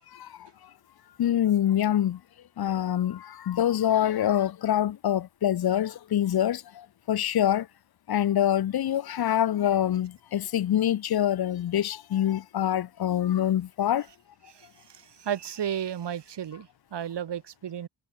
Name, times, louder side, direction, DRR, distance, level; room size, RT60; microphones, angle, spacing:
voice 1, 1.2-2.2 2.6-3.2 3.5-6.6 7.1-7.6 8.1-14.0, left 11 dB, 60° left, 0.8 m, -25 dB
voice 2, 14.5-17.9, right 9 dB, 75° right, 3.3 m, -34 dB
wide cardioid pair, 155°, 42 cm